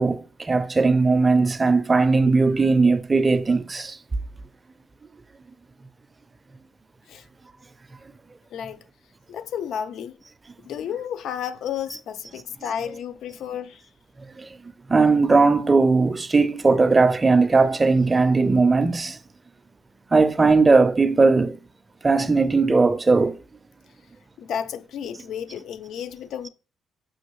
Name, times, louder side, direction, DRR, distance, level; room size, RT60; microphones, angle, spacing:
voice 1, 0.0-4.0 14.4-14.6 14.9-19.2 20.1-21.6 22.0-23.4, right 3 dB, 25° right, 0.4 m, -18 dB
voice 2, 8.5-8.8 9.3-10.2 10.7-13.8 24.4-26.5, left 8 dB, 75° left, 0.3 m, -32 dB
6.2 x 2.6 x 3.0 m
cardioid pair, 90°, 0 cm